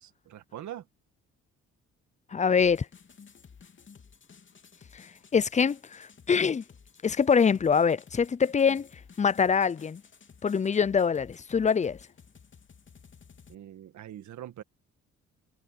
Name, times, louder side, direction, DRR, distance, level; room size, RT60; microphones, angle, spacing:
voice 1, 0.0-0.9 13.5-14.6, right 12 dB, 70° right, 1.7 m, -43 dB
voice 2, 2.3-2.9 4.9-6.6 7.0-8.9 9.2-10.0 10.4-12.0, left 6 dB, 25° left, 0.6 m, -24 dB
sound 1, 2.6-13.5, left 6 dB, 40° left, 3.0 m, -54 dB
cardioid pair, 90°, 30 cm